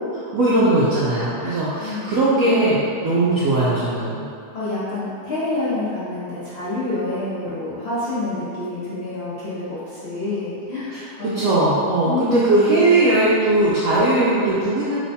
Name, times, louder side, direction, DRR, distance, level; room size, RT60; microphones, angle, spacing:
voice 1, 0.1-4.3 10.9-15.0, right 2 dB, 75° right, -9 dB, 0.7 m, -19 dB
voice 2, 1.4-2.1 4.5-11.3 12.0-12.3, left 2 dB, 60° left, -11 dB, 0.6 m, -28 dB
3.1 x 2.2 x 4.0 m, 2.5 s
omnidirectional pair, 1.9 m